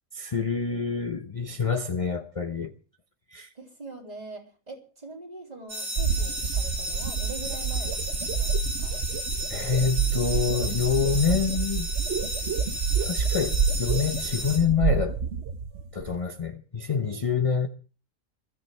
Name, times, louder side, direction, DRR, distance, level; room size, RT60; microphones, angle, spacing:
voice 1, 0.1-2.7 3.3-3.5 9.5-11.9 13.0-15.2 15.9-17.7, left 6 dB, 30° left, 0.8 m, -27 dB
voice 2, 0.7-1.4 3.6-9.0 17.0-17.2, right 2 dB, 30° right, 3.3 m, -43 dB
sound 1, 5.7-14.6, equal, 85° right, 4.9 m, -34 dB
sound 2, 6.0-16.1, right 6 dB, 60° right, 1.3 m, -28 dB
22.5 x 13.5 x 3.4 m
omnidirectional pair, 1.3 m